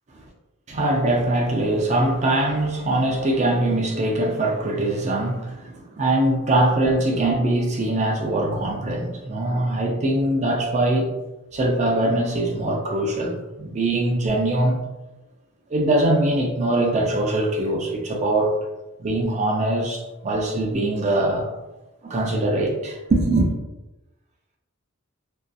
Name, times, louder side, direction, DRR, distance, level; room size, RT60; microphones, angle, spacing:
voice 1, 0.7-11.1 11.5-14.8 15.7-18.6 19.0-21.5 22.0-23.5, right 1 dB, 30° right, 0.4 m, -22 dB
2.5 x 2.3 x 2.2 m
head